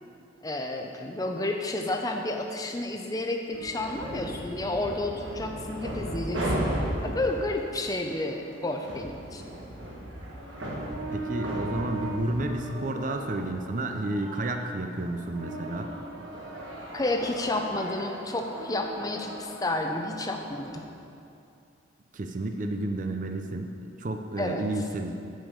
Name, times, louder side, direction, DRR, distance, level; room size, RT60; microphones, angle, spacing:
voice 1, 0.4-6.7 7.0-9.4 16.9-20.9 24.4-24.7, left 2 dB, 20° left, 3 dB, 0.6 m, -31 dB
sound 1, 3.5-20.8, right 1 dB, 85° right, 1.4 m, -36 dB
voice 2, 11.1-15.9 22.1-25.1, right 2 dB, 40° right, 5 dB, 0.5 m, -31 dB
8.9 x 5.3 x 6.6 m, 2.5 s
head